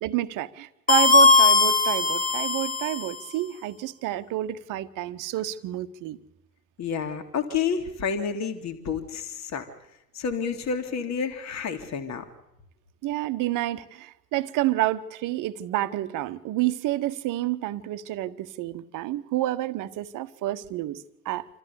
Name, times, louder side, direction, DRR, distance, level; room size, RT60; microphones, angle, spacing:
voice 1, 0.0-6.2 13.0-21.5, right 15 dB, 40° right, 1.1 m, -29 dB
sound 1, 0.9-3.3, left 3 dB, 15° left, 1.3 m, -19 dB
voice 2, 6.8-9.6 10.1-12.2, left 6 dB, 35° left, 2.2 m, -29 dB
27.0 x 14.0 x 8.4 m
figure-of-eight pair, 70°, 48 cm